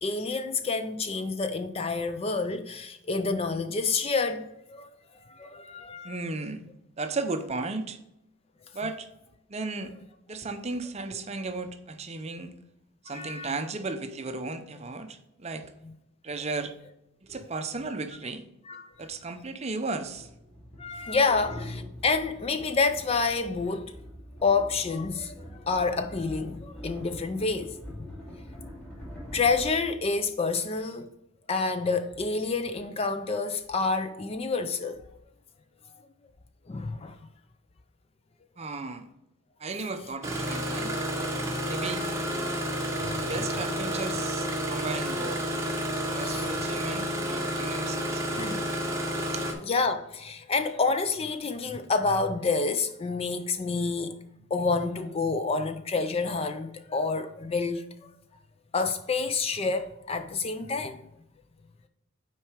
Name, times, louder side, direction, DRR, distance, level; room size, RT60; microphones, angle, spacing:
voice 1, 0.0-4.9 5.3-6.2 13.1-13.5 18.7-18.9 20.8-23.9 24.4-27.8 29.3-31.1 31.5-35.0 36.7-37.2 46.2-46.5 48.3-48.7 49.6-54.1 54.5-57.9 58.7-61.0, left 4 dB, 25° left, 0.3 m, -28 dB
voice 2, 6.0-6.6 7.0-8.0 8.7-9.1 9.5-9.9 10.3-12.5 13.0-15.7 16.2-16.7 17.2-18.4 19.0-20.3 21.3-21.4 38.6-39.1 39.6-40.9 41.6-42.1 43.2-45.6 46.1-48.5 49.1-49.3, right 3 dB, 30° right, 0.5 m, -35 dB
sound 1, 18.9-19.0 20.0-30.6, equal, 5° left, 2.6 m, -44 dB
Engine starting, 40.2-49.5, equal, 15° right, 0.9 m, -30 dB
6.0 x 4.5 x 4.9 m
head